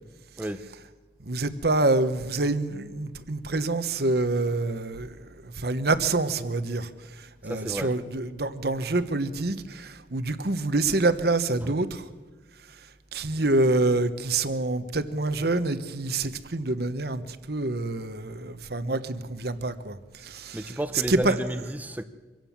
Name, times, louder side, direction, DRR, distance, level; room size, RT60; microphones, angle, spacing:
voice 1, 0.4-0.7 7.4-7.9 11.6-11.7 20.5-22.0, right 1 dB, 10° right, 0.8 m, -32 dB
voice 2, 1.2-6.9 7.2-12.1 13.1-21.7, right 2 dB, 60° right, 1.2 m, -27 dB
24.5 x 16.5 x 7.4 m
head